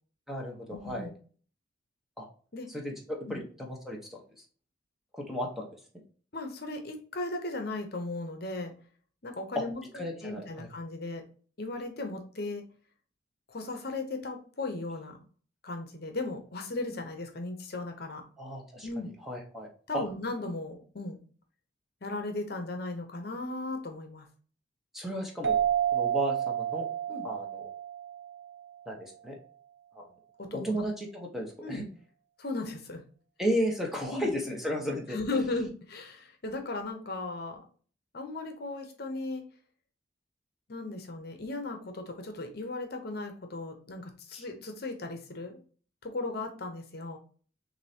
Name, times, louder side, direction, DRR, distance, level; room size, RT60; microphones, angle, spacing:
voice 1, 0.3-1.1 2.2-2.3 2.7-4.2 5.1-5.8 9.5-9.6 9.9-10.7 18.4-18.9 19.2-20.0 24.9-25.6 25.9-26.9 27.2-27.7 28.9-29.4 29.9-30.1 30.5-31.8 33.4-35.2 44.3-44.4, equal, ahead, 0 dB, 1.0 m, -34 dB
voice 2, 0.8-1.1 2.5-2.7 3.3-3.4 6.3-8.7 9.2-9.8 10.2-11.2 11.6-12.6 13.5-15.2 15.6-18.2 18.8-19.1 19.9-21.2 22.0-24.3 27.1-27.2 30.4-30.8 31.6-31.8 32.4-33.0 34.1-34.3 35.1-37.6 38.1-39.4 40.7-45.6 46.0-47.2, left 2 dB, 55° left, 5 dB, 0.9 m, -36 dB
sound 1, 25.4-28.7, right 10 dB, 90° right, 1.0 m, -30 dB
6.6 x 2.7 x 2.8 m, 0.42 s
head